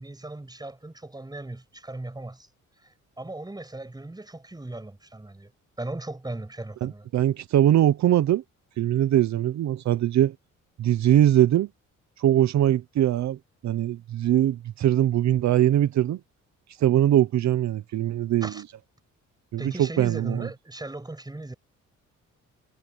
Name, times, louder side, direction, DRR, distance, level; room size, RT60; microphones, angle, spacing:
voice 1, 0.0-2.5 2.8-5.5 5.8-7.1 18.4-18.6 19.6-21.5, right 2 dB, 15° right, 6.8 m, -37 dB
voice 2, 6.8-8.4 8.8-10.3 10.8-11.7 12.2-13.4 13.6-16.2 16.8-18.5 19.5-20.5, right 12 dB, 65° right, 0.9 m, -22 dB
cardioid pair, 90°, 30 cm